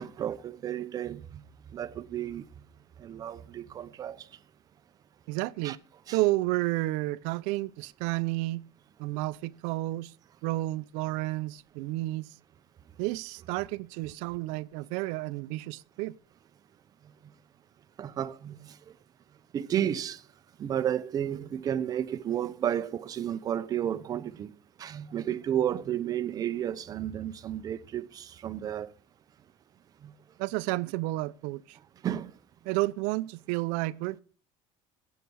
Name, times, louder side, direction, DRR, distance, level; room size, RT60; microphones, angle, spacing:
voice 1, 0.0-1.4 1.7-2.4 3.0-4.2 5.6-5.8 6.1-6.2 18.0-18.7 19.5-20.2 20.6-24.5 24.8-28.9 32.0-32.3, right 10 dB, 30° right, 0.8 m, -32 dB
voice 2, 5.3-5.8 6.1-8.6 9.0-10.1 10.4-12.3 13.0-16.1 30.4-31.8 32.7-34.2, right 19 dB, 80° right, 0.7 m, -31 dB
15.0 x 8.4 x 6.3 m
cardioid pair, 170°, 13 cm